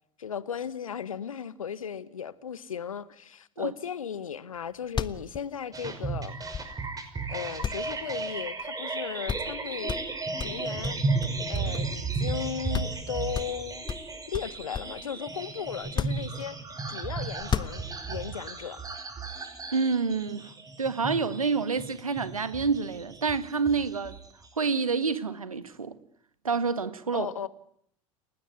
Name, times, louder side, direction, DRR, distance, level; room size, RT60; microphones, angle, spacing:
voice 1, 0.2-6.4 7.3-9.9 10.4-11.0 11.5-13.8 14.3-16.6 16.9-17.8 18.1-18.8 27.1-27.5, left 8 dB, 75° left, 1.3 m, -36 dB
sound 1, 4.6-4.7 4.8-7.0 7.6-8.7 8.9-9.0 9.3-9.6 9.9-12.0 12.4-12.5 12.7-13.0 13.3-15.0 15.8-16.8 17.4-18.2, left 7 dB, 25° left, 1.4 m, -34 dB
sound 2, 5.7-24.5, right 3 dB, 20° right, 5.7 m, -34 dB
voice 2, 19.7-20.5 20.8-24.2 24.6-25.9 26.4-27.3, right 5 dB, 85° right, 1.6 m, -28 dB
30.0 x 19.0 x 9.6 m
figure-of-eight pair, 75°, 17 cm